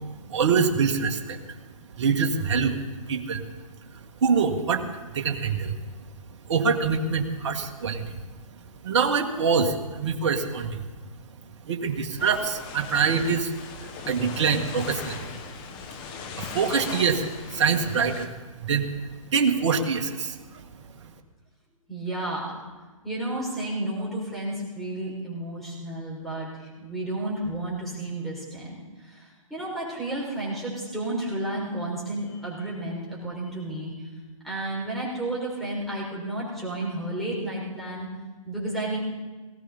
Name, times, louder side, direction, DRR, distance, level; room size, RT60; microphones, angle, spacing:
voice 1, 0.3-1.4 2.0-2.8 3.1-3.4 4.2-5.8 6.5-8.2 8.8-10.8 11.6-13.5 13.8-15.2 16.3-18.3 18.6-20.6, right 5 dB, 55° right, 4 dB, 1.8 m, -25 dB
sound 1, 12.2-18.3, left 6 dB, 25° left, 1.4 m, -39 dB
voice 2, 21.9-22.6 23.0-34.1 34.4-38.1 38.5-39.0, right 1 dB, ahead, -6 dB, 5.7 m, -32 dB
19.5 x 16.5 x 4.2 m, 1.3 s
hypercardioid pair, 140°, 18 cm